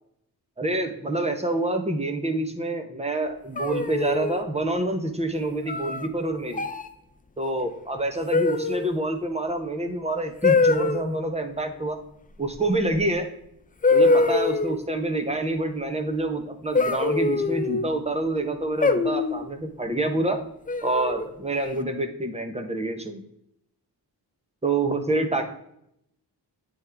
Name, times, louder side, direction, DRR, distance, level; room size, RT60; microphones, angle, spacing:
voice 1, 0.6-6.6 7.4-12.0 12.4-13.3 13.9-20.4 20.8-23.2 24.6-25.5, right 2 dB, 15° right, 6 dB, 0.7 m, -27 dB
sound 1, 3.6-4.4 5.7-6.1 6.5-6.9 8.3-8.9 10.4-11.0 12.9-13.0 13.8-14.8 16.7-17.8 18.8-19.4 20.7-21.3, left 3 dB, 20° left, 0.3 m, -23 dB
9.5 x 3.5 x 3.3 m, 0.75 s
wide cardioid pair, 150°, 42 cm